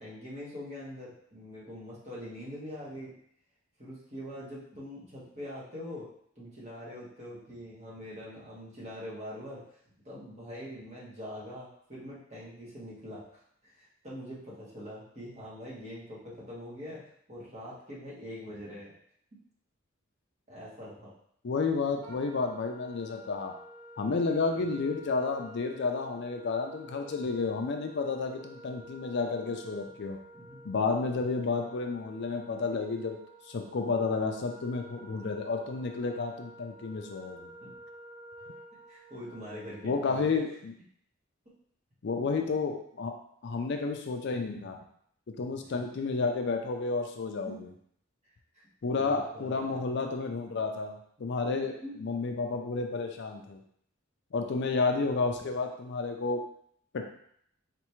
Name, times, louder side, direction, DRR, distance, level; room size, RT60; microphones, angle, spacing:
voice 1, 0.0-3.1 3.8-6.1 6.3-9.8 10.0-17.0 17.3-18.9 20.5-21.1 24.5-24.7 30.3-30.6 37.6-37.7 38.9-40.4 45.6-45.7 47.5-47.6 48.8-49.8 51.2-51.3 51.6-51.9 57.0-57.1, equal, 35° right, -7 dB, 1.5 m, -43 dB
voice 2, 21.4-23.5 24.0-30.2 30.6-33.2 33.5-37.5 39.8-40.7 42.0-43.1 43.4-44.8 45.3-47.5 48.8-53.6 54.3-56.4 56.9-57.0, left 4 dB, 55° left, 4 dB, 0.4 m, -31 dB
Wind instrument woodwind instrument, 22.0-40.1, right 1 dB, 85° right, 0.9 m, -50 dB
4.1 x 3.4 x 3.1 m, 0.67 s
head